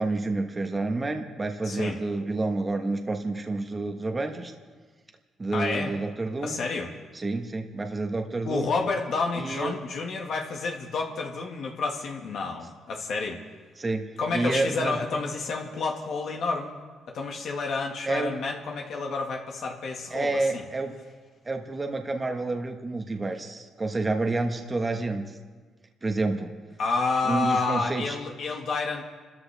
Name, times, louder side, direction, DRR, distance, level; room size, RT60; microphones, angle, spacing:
voice 1, 0.0-4.5 5.4-6.6 7.1-8.7 9.4-9.7 13.8-14.1 14.3-15.0 18.0-18.4 20.1-20.9 21.4-25.3 26.0-26.5 27.2-28.1, right 2 dB, 25° right, 4 dB, 1.3 m, -29 dB
voice 2, 1.7-2.0 5.5-5.9 6.4-6.9 8.5-13.4 14.2-16.8 17.1-20.6 26.8-29.0, left 4 dB, 65° left, 1 dB, 1.8 m, -29 dB
30.0 x 13.5 x 3.5 m, 1.4 s
cardioid pair, 90°, 0 cm